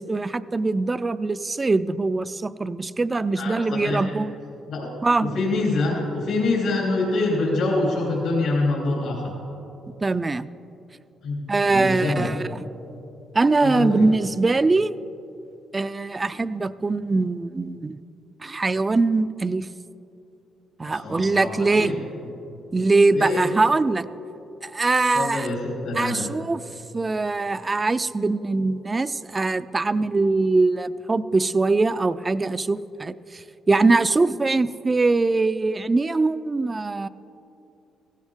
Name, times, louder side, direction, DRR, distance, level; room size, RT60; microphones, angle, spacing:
voice 1, 0.0-4.3 5.0-5.3 10.0-10.5 11.5-12.6 13.3-14.9 15.7-18.0 18.4-19.7 20.8-21.9 22.7-24.1 24.6-25.5 25.9-26.6 26.9-37.1, right 3 dB, 25° right, 15 dB, 0.4 m, -22 dB
voice 2, 3.3-4.2 4.7-4.9 5.2-9.3 11.2-12.3 13.6-14.1 20.8-22.0 23.1-23.5 25.1-26.3, left 2 dB, 75° left, -3 dB, 3.2 m, -25 dB
16.5 x 15.5 x 3.7 m, 2.9 s
cardioid pair, 90°, 0 cm